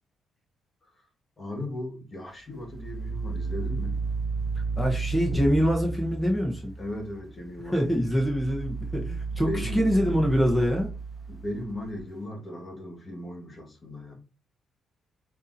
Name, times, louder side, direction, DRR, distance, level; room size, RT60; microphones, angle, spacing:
voice 1, 1.4-4.0 6.8-8.2 9.3-9.8 11.3-14.2, left 1 dB, 30° left, 1.6 m, -37 dB
sound 1, 2.6-6.3 7.6-12.0, right 4 dB, 20° right, 1.4 m, -33 dB
voice 2, 4.8-6.7 7.6-10.9, equal, ahead, 1.0 m, -25 dB
sound 2, 5.3-7.8, right 2 dB, 35° right, 0.9 m, -36 dB
7.0 x 2.8 x 2.7 m
cardioid pair, 90°, 0 cm